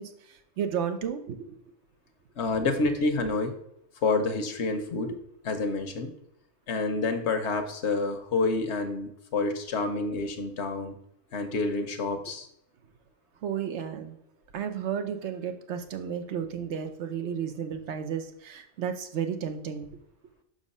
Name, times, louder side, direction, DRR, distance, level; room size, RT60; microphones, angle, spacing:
voice 1, 0.0-1.4 13.4-14.2 14.5-19.9, right 8 dB, 80° right, 7 dB, 1.0 m, -33 dB
voice 2, 2.4-3.5 4.0-5.1 5.4-6.1 6.7-10.9 11.3-12.5, left 3 dB, 75° left, 7 dB, 1.1 m, -28 dB
6.1 x 3.9 x 5.4 m, 0.75 s
omnidirectional pair, 1.2 m